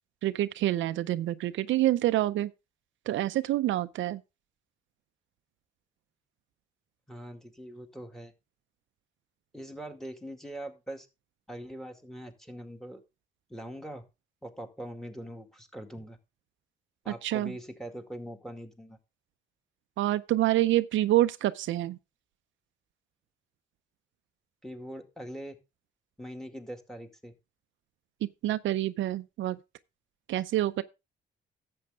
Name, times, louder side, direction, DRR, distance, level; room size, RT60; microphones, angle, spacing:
voice 1, 0.2-2.5 3.1-4.2 17.1-17.5 20.0-22.0 28.2-29.6 30.3-30.8, right 14 dB, 75° right, 0.5 m, -27 dB
voice 2, 7.1-8.3 9.5-11.1 11.5-13.0 13.5-14.0 14.4-16.2 17.0-19.0 24.6-25.6 26.2-27.3, equal, ahead, 2.1 m, -42 dB
11.5 x 7.8 x 3.5 m
cardioid pair, 90°, 20 cm